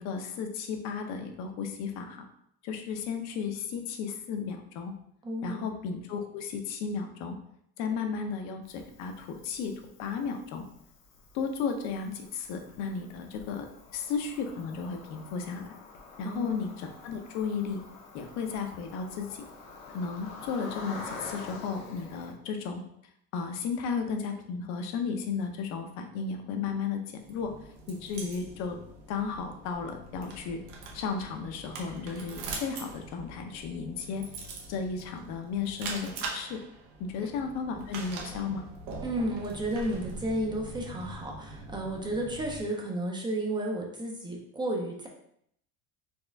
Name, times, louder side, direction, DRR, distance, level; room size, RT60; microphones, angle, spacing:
voice 1, 0.0-2.3 2.6-4.9 5.4-7.4 7.8-9.7 10.0-10.6 11.3-13.7 13.9-15.7 16.2-17.8 18.1-19.5 19.9-22.8 23.3-27.0 27.3-27.5 27.9-28.8 29.1-30.6 30.9-34.2 34.7-36.6 37.0-38.7, left 5 dB, 60° left, 5 dB, 0.7 m, -34 dB
voice 2, 5.2-5.7 16.2-16.6 39.0-45.1, right 1 dB, 15° right, 0 dB, 0.5 m, -32 dB
Cricket, 8.6-22.3, left 3 dB, 80° left, 0.9 m, -47 dB
sound 1, 27.2-42.6, right 3 dB, 75° right, 0.9 m, -43 dB
4.3 x 2.4 x 3.4 m, 0.71 s
cardioid pair, 140°, 30 cm